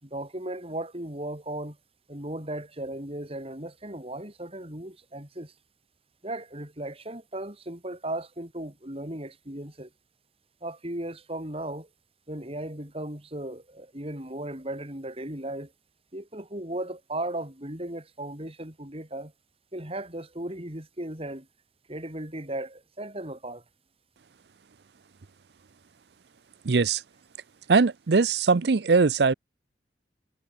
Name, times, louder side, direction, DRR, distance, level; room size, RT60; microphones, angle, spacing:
voice 1, 0.0-1.8 2.1-5.5 6.2-9.9 10.6-11.9 12.3-15.7 16.1-19.3 19.7-21.5 21.9-23.6, right 1 dB, 35° right, 5.6 m, -36 dB
voice 2, 26.6-27.0 27.7-29.3, right 4 dB, 65° right, 0.6 m, -21 dB
head